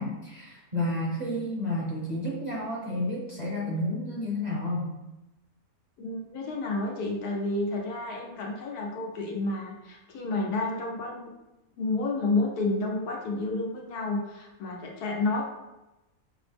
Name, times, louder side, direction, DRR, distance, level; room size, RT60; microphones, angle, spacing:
voice 1, 0.0-4.9, left 1 dB, 35° right, -5 dB, 0.7 m, -31 dB
voice 2, 6.0-11.3 11.8-15.4, left 2 dB, 90° left, 0 dB, 1.3 m, -30 dB
5.9 x 2.0 x 3.3 m, 1.0 s
omnidirectional pair, 1.6 m